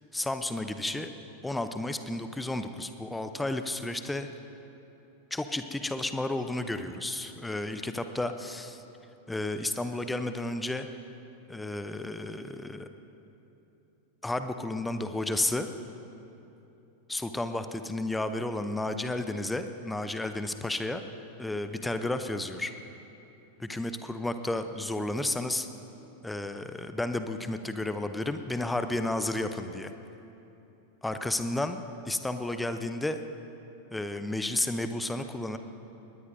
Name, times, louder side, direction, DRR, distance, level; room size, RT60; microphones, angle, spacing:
voice 1, 0.1-1.1 1.4-4.3 5.3-8.8 9.3-10.9 11.5-12.9 14.2-15.7 17.1-21.0 21.4-22.7 23.6-25.7 26.2-29.9 31.0-33.2 33.9-35.6, left 2 dB, 5° left, 9 dB, 0.6 m, -32 dB
21.5 x 19.0 x 2.6 m, 3.0 s
figure-of-eight pair, 90°, 0 cm